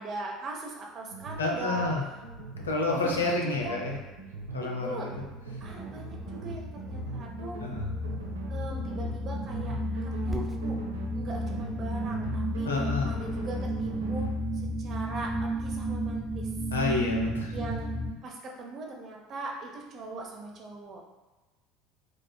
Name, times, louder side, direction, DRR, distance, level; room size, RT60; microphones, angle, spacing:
voice 1, 0.0-1.9 2.9-3.8 4.6-5.1 5.6-7.6 8.5-10.8 11.1-12.7 13.0-16.5 17.5-17.9 18.2-21.0, right 2 dB, 45° right, 0 dB, 0.8 m, -40 dB
sound 1, 1.1-14.4, right 3 dB, 85° right, 0.5 m, -41 dB
voice 2, 1.4-2.0 2.6-3.9 4.5-5.1 7.6-7.9 12.6-13.2 16.7-17.5, left 3 dB, 85° left, 0 dB, 0.5 m, -29 dB
sound 2, 5.7-18.1, equal, 5° left, 1.3 m, -33 dB
Dog, 5.7-7.3 8.8-10.6, equal, 15° right, 0.4 m, -44 dB
4.7 x 2.3 x 2.2 m, 1.2 s
hypercardioid pair, 70°, 0 cm